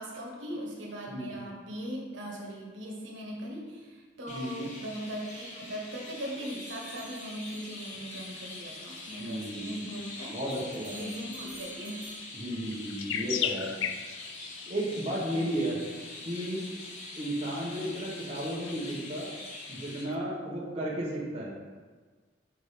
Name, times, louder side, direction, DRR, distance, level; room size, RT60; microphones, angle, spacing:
voice 1, 0.0-10.3 10.9-12.0, equal, 80° right, -2 dB, 1.2 m, -39 dB
voice 2, 1.1-1.4 4.3-4.7 9.2-9.9 10.3-11.1 12.3-13.8 14.7-15.8 16.3-16.6 17.2-19.3 19.7-21.5, right 1 dB, 30° right, -6 dB, 1.0 m, -34 dB
Chirp tweet, 4.3-20.0, left 2 dB, 40° left, 1.1 m, -44 dB
sound 1, 6.7-8.4 9.0-9.2 10.5-12.8, right 2 dB, 45° right, 1.9 m, -51 dB
sound 2, 7.4-20.2, left 9 dB, 75° left, 0.3 m, -42 dB
5.6 x 3.7 x 4.9 m, 1.4 s
head